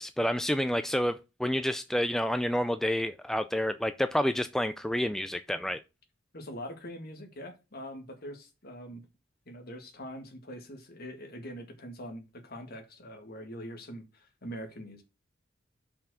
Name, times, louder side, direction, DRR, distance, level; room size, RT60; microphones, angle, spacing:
voice 1, 0.0-5.8, equal, ahead, 0.3 m, -29 dB
voice 2, 6.3-9.0 9.5-15.0, equal, 50° left, 1.9 m, -43 dB
5.7 x 4.6 x 6.2 m
head